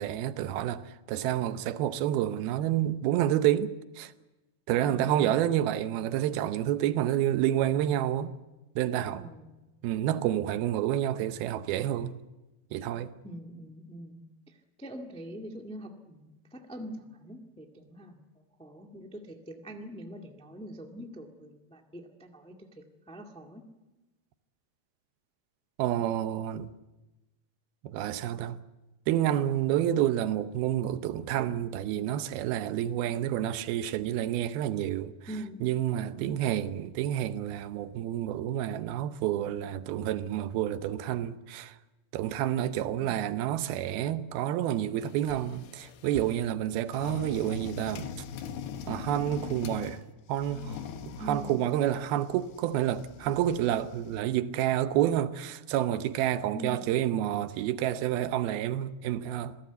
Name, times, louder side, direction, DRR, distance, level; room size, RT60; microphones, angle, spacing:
voice 1, 0.0-4.1 4.7-8.4 8.8-9.3 9.8-12.2 12.7-13.1 25.8-26.7 27.8-28.6 29.1-35.1 35.6-41.8 42.1-48.1 48.9-50.0 50.3-59.6, right 11 dB, 90° right, 2.8 m, -29 dB
voice 2, 4.8-5.4 9.2-9.7 13.2-14.2 14.8-18.2 18.6-23.6 35.3-35.7 51.2-51.6 56.5-56.8, equal, 10° left, 0.3 m, -43 dB
sound 1, 45.0-46.5 46.9-50.0 50.4-54.2, left 7 dB, 85° left, 3.2 m, -42 dB
27.0 x 17.5 x 8.2 m
omnidirectional pair, 4.2 m